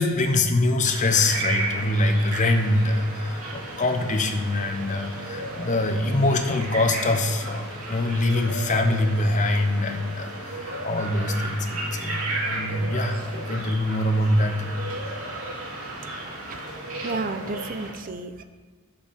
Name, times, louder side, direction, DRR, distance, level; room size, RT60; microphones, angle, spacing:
voice 1, 0.0-14.7, left 2 dB, 35° left, 6 dB, 0.7 m, -24 dB
sound 1, 0.8-17.9, right 2 dB, 80° right, 2.2 m, -34 dB
voice 2, 17.0-18.4, right 3 dB, 40° right, 8 dB, 0.5 m, -32 dB
7.0 x 5.7 x 4.9 m, 1.4 s
head